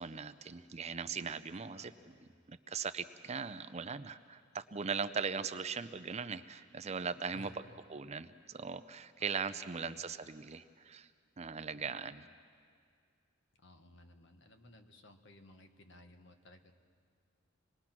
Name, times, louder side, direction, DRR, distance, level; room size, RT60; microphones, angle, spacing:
voice 1, 0.0-2.1 2.5-7.6 7.9-11.1 11.4-12.3, right 5 dB, 35° right, 12 dB, 0.6 m, -39 dB
voice 2, 1.7-2.3 7.3-7.7 9.2-10.1 11.7-12.2 13.6-16.7, left 1 dB, 65° left, 6 dB, 1.5 m, -59 dB
26.5 x 20.5 x 6.0 m, 2.2 s
head